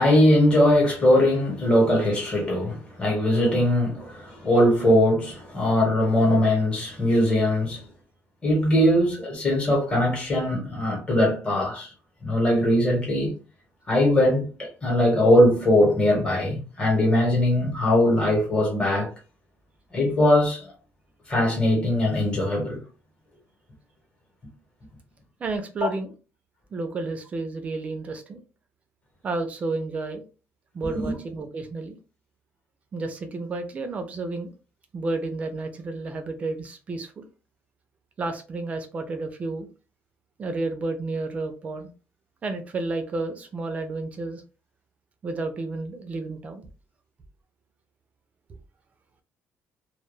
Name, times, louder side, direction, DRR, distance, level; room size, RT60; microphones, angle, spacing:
voice 1, 0.0-7.8 8.4-11.9 12.2-13.3 13.9-19.1 19.9-20.7 21.3-22.8 30.8-31.1, left 1 dB, 20° left, 1.0 m, -21 dB
voice 2, 25.4-26.1 26.7-28.4 29.2-30.2 30.7-32.0 32.9-34.5 34.9-37.3 38.2-39.7 40.4-41.9 42.4-44.4 45.2-46.7, right 3 dB, 30° right, 0.4 m, -31 dB
2.2 x 2.1 x 3.0 m
cardioid pair, 165°, 5 cm